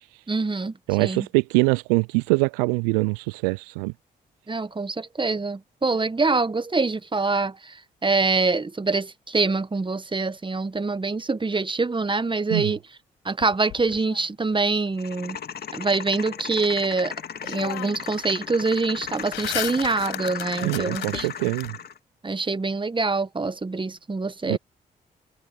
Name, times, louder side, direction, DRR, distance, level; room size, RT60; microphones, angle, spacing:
voice 1, 0.3-0.7 1.0-1.3 4.5-7.7 8.0-12.8 13.2-15.4 15.7-17.1 17.4-21.3 22.2-24.6, right 3 dB, 25° right, 1.5 m, -25 dB
voice 2, 0.9-3.9 12.5-12.8 20.5-21.8 24.5-24.6, right 31 dB, 80° right, 0.4 m, -23 dB
sound 1, 13.4-14.7 16.9-17.0 17.4-18.2 18.5-21.7, left 18 dB, 75° left, 5.5 m, -36 dB
sound 2, 15.0-22.0, left 7 dB, 55° left, 2.0 m, -36 dB
hypercardioid pair, 40°, 20 cm